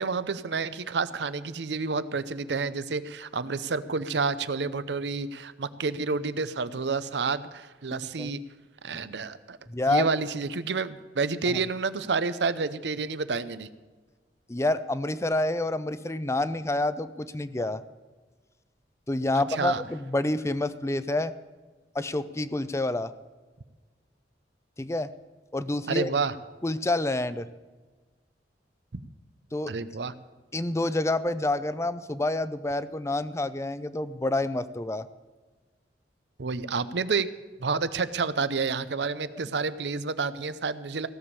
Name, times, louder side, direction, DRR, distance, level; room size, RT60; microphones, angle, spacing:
voice 1, 0.0-8.4 8.8-9.6 9.9-13.7 19.3-19.8 25.9-26.3 28.9-29.0 29.7-30.1 36.4-37.3 37.6-41.1, right 4 dB, 80° right, 14 dB, 0.7 m, -29 dB
voice 2, 9.7-10.1 11.5-11.6 14.5-17.8 19.1-21.3 21.9-23.1 24.8-25.1 25.5-26.1 26.6-27.5 29.5-29.7 30.5-35.1, left 2 dB, 15° left, 14 dB, 0.5 m, -28 dB
16.5 x 7.1 x 8.2 m, 1.3 s
head